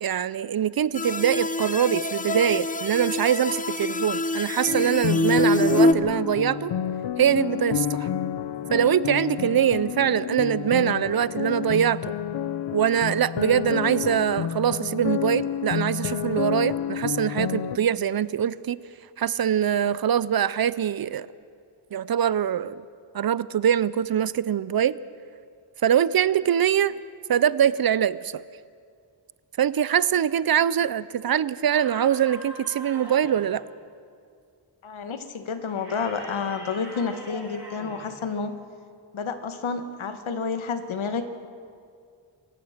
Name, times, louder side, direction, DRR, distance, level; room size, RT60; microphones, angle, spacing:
voice 1, 0.0-6.7 7.2-8.1 8.7-12.1 12.7-18.8 19.2-21.3 21.9-22.8 23.1-25.0 25.8-27.0 27.3-28.4 29.6-33.6, right 9 dB, 50° right, 18 dB, 0.5 m, -23 dB
sound 1, 1.0-5.9, left 2 dB, 20° left, 0.5 m, -25 dB
sound 2, 4.7-17.8, left 10 dB, 65° left, 0.6 m, -29 dB
sound 3, 31.7-33.5 35.7-38.2, right 1 dB, 5° right, 6.8 m, -42 dB
voice 2, 34.8-38.5 39.1-41.5, left 5 dB, 90° left, 9 dB, 1.5 m, -30 dB
26.0 x 15.5 x 6.5 m, 2.3 s
wide cardioid pair, 150°, 46 cm